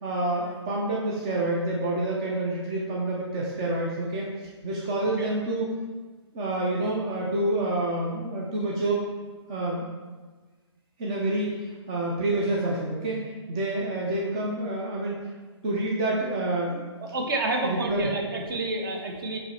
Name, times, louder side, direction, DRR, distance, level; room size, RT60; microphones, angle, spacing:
voice 1, 0.0-4.3 4.6-5.7 6.3-9.0 9.5-9.8 11.0-13.2 13.5-15.2 15.6-16.9 17.6-18.1, right 1 dB, 15° right, -4 dB, 0.3 m, -28 dB
voice 2, 17.0-19.4, right 2 dB, 45° right, 1 dB, 1.0 m, -29 dB
7.5 x 2.9 x 4.2 m, 1.3 s
hypercardioid pair, 165°, 15 cm